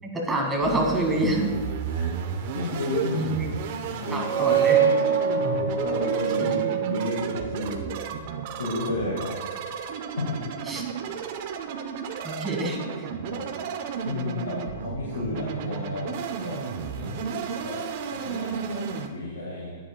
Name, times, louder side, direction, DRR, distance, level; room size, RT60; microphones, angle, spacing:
voice 1, 0.1-1.5 3.1-3.5 4.1-4.8 6.4-6.6 10.7-10.8 12.2-13.1, right 1 dB, 15° right, -1 dB, 1.9 m, -26 dB
sound 1, 0.6-19.1, right 6 dB, 50° right, 0.8 m, -33 dB
voice 2, 2.3-3.4 3.8-4.3 5.8-6.6 6.9-7.9 8.5-9.5 10.2-10.4 13.3-13.5 14.0-16.7 16.9-19.8, left 2 dB, 85° left, -4 dB, 1.8 m, -32 dB
sound 2, 4.0-7.6, right 7 dB, 90° right, 1.4 m, -24 dB
11.0 x 9.6 x 2.3 m, 1.4 s
hypercardioid pair, 115°, 0 cm